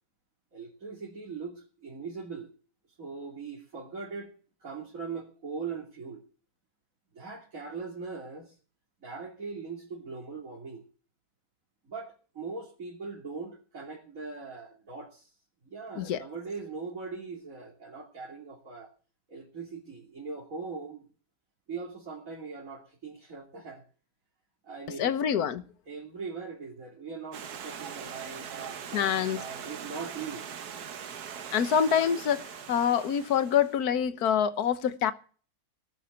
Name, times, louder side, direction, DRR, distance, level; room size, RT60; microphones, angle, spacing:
voice 1, 0.5-2.5 3.0-4.3 4.6-6.2 7.1-8.5 9.0-10.8 11.8-15.3 15.6-18.9 19.3-21.0 21.7-23.8 24.6-25.1 25.9-30.4, right 4 dB, 60° right, 3.4 m, -40 dB
voice 2, 25.0-25.6 28.9-29.4 31.5-35.1, left 8 dB, 80° left, 1.5 m, -26 dB
Stream, 27.3-33.8, right 8 dB, 80° right, 1.7 m, -41 dB
19.0 x 7.4 x 6.9 m
omnidirectional pair, 1.6 m